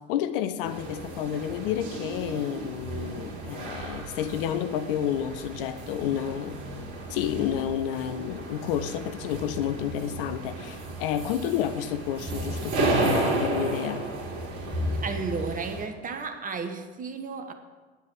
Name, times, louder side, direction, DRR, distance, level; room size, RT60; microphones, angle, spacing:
voice 1, 0.0-6.6 7.1-14.0, left 10 dB, 50° left, 11 dB, 0.8 m, -30 dB
sound 1, 0.6-15.9, right 2 dB, 50° right, 2.8 m, -33 dB
voice 2, 15.0-17.5, right 4 dB, 25° right, 7 dB, 1.3 m, -33 dB
9.3 x 8.1 x 7.8 m, 1.3 s
figure-of-eight pair, 75°, 34 cm